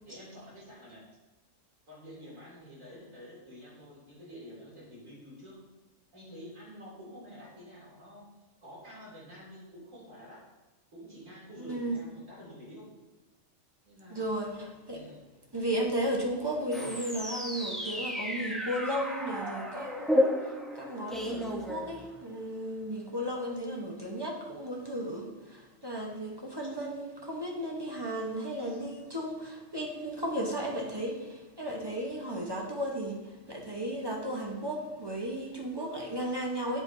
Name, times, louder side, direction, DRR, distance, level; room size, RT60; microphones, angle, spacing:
voice 1, 0.0-1.1 1.9-5.6 6.1-8.3 8.6-10.5 10.9-12.9 13.8-14.3 14.9-15.2 27.8-28.0, equal, 80° right, -5 dB, 3.1 m, -49 dB
voice 2, 11.6-12.0 14.1-15.1 15.5-36.8, right 1 dB, 20° right, 0 dB, 0.8 m, -35 dB
sound 1, 16.7-22.4, left 1 dB, ahead, 0.6 m, -32 dB
7.8 x 7.8 x 2.7 m, 1.2 s
omnidirectional pair, 1.4 m